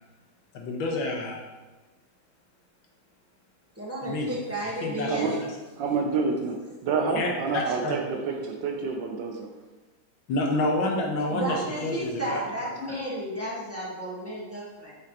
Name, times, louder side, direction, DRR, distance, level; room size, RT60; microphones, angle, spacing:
voice 1, 0.5-1.5 4.0-4.3 4.8-5.5 7.1-8.0 10.3-12.4 12.9-13.0, left 2 dB, 75° left, 1 dB, 1.7 m, -29 dB
voice 2, 3.8-5.4 6.1-6.4 11.3-15.0, right 1 dB, 10° right, -6 dB, 1.0 m, -33 dB
voice 3, 5.8-6.6 6.8-9.5, right 4 dB, 70° right, 3 dB, 1.3 m, -28 dB
7.2 x 5.1 x 2.9 m, 1.2 s
omnidirectional pair, 2.2 m